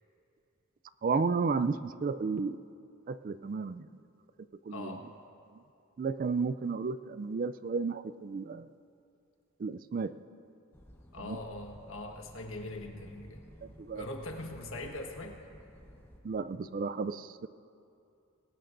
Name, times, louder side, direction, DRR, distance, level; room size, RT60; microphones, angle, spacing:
voice 1, 1.0-2.6 3.1-3.9 4.7-5.0 6.0-8.7 9.6-10.1 11.2-11.4 13.8-14.0 16.2-17.5, right 4 dB, 40° right, 14 dB, 0.3 m, -32 dB
voice 2, 4.7-5.1 11.1-13.4 13.9-15.4, left 2 dB, 65° left, 3 dB, 1.4 m, -41 dB
sound 1, 10.7-16.2, equal, 10° left, 1.0 m, -54 dB
21.5 x 18.0 x 2.6 m, 2.6 s
head